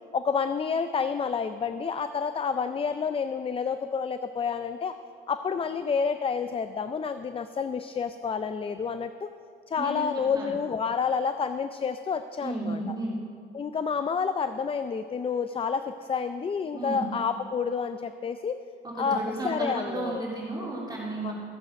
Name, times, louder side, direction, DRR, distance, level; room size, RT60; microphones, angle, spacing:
voice 1, 0.1-5.0 5.3-9.3 9.7-12.8 13.5-18.5 19.0-20.2 21.2-21.3, left 6 dB, 30° left, 10 dB, 0.4 m, -29 dB
voice 2, 9.8-10.5 12.4-13.1 16.7-17.1 18.8-21.3, right 2 dB, 20° right, -6 dB, 3.0 m, -33 dB
14.5 x 7.4 x 5.2 m, 2.4 s
cardioid pair, 90°, 20 cm